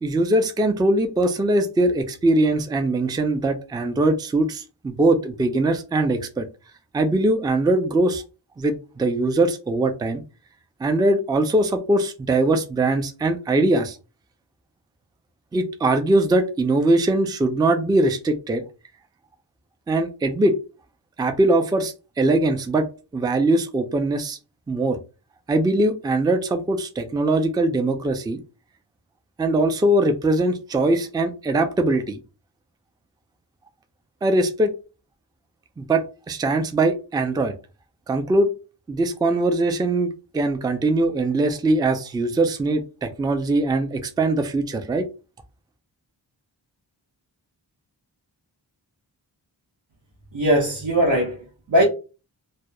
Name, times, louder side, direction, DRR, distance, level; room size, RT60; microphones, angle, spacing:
voice 1, 0.0-6.4 6.9-8.2 8.6-10.2 10.8-14.0 15.5-18.6 19.9-20.6 21.2-22.9 23.1-24.4 24.7-25.0 25.5-28.4 29.4-32.2 34.2-34.7 35.8-37.5 38.1-38.5 38.9-45.0, right 2 dB, 10° right, 0.3 m, -21 dB
voice 2, 50.3-51.8, equal, 80° right, 0.9 m, -20 dB
2.7 x 2.0 x 2.2 m
wide cardioid pair, 65°, 44 cm